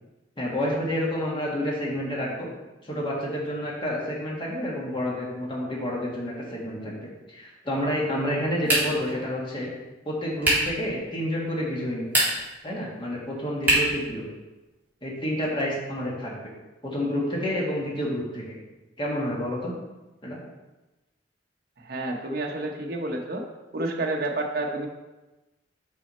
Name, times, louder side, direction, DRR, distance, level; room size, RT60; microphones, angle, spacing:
voice 1, 0.4-2.5 2.8-9.7 10.0-12.1 12.6-14.3 15.0-16.4 16.8-18.6 19.0-19.7 20.2-20.4, equal, 25° left, -4 dB, 1.6 m, -29 dB
sound 1, 8.6-9.1 10.4-10.8 12.0-12.6 13.6-14.0, right 1 dB, 10° right, 2.2 m, -23 dB
voice 2, 21.8-23.5 23.7-24.9, right 2 dB, 55° right, 1 dB, 0.8 m, -29 dB
6.1 x 5.0 x 4.2 m, 1.1 s
head